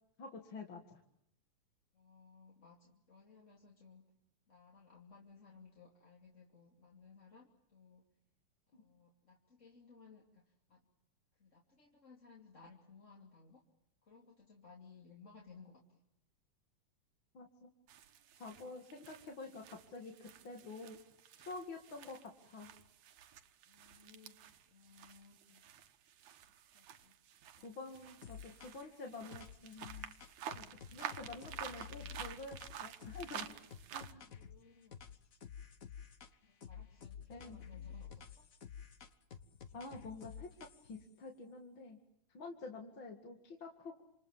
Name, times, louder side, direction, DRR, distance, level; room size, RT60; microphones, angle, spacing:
voice 1, 0.2-1.0 8.7-8.8 17.3-17.7 18.3-21.0 21.4-22.7 27.6-30.1 30.5-30.6 30.9-33.6 33.9-34.2 37.3-37.6 39.7-42.0 42.3-44.0, left 3 dB, 40° left, 2 dB, 2.7 m, -48 dB
voice 2, 1.9-4.1 4.5-8.0 8.7-10.8 11.3-13.6 14.0-16.0 23.7-25.6 26.7-27.2 27.6-27.7 28.2-28.5 30.5-30.8 34.1-35.0 36.4-38.5, left 5 dB, 25° left, -1 dB, 2.8 m, -61 dB
sound 1, 17.9-34.1, right 9 dB, 70° right, 2.6 m, -51 dB
sound 2, 28.2-28.9 29.3-34.6 34.9-36.3 36.6-41.0, left 7 dB, 60° left, 0.9 m, -51 dB
29.0 x 28.0 x 7.3 m, 0.76 s
omnidirectional pair, 3.6 m